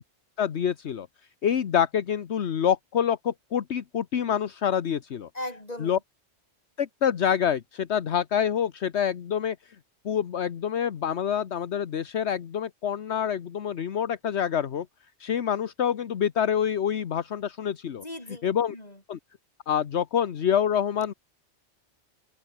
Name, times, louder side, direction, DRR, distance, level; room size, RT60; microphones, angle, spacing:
voice 1, 0.4-1.1 1.4-5.3 5.8-6.0 6.8-9.8 10.0-14.9 15.2-18.0 18.4-18.7 19.1-19.2 19.7-21.1, left 8 dB, 70° left, 1.3 m, -26 dB
voice 2, 5.3-6.0 17.9-19.0, left 1 dB, 35° left, 5.3 m, -38 dB
open air
omnidirectional pair, 1.2 m